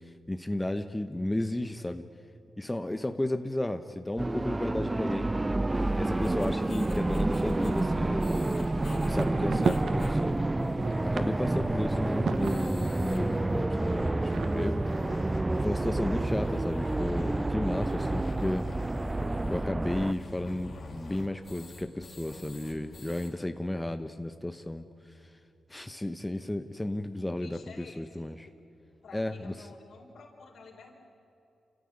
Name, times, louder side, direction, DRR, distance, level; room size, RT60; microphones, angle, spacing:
voice 1, 0.0-2.1 2.6-5.3 5.9-8.6 8.9-10.4 11.0-14.9 15.6-18.7 19.5-24.8 25.7-28.5 29.1-29.5, left 1 dB, 15° left, 8 dB, 1.0 m, -33 dB
sound 1, 4.2-20.1, right 2 dB, 20° right, 0.5 m, -29 dB
sound 2, 5.7-23.3, left 2 dB, 55° left, 4.0 m, -45 dB
sound 3, 7.0-10.0 10.5-13.1 13.9-16.5 17.1-17.2 17.4-17.5 17.7-18.6, right 6 dB, 75° right, 1.1 m, -38 dB
voice 2, 27.2-28.6 29.0-30.9, left 4 dB, 75° left, 2 dB, 4.3 m, -52 dB
28.0 x 15.0 x 9.9 m, 2.7 s
cardioid pair, 65°, 0 cm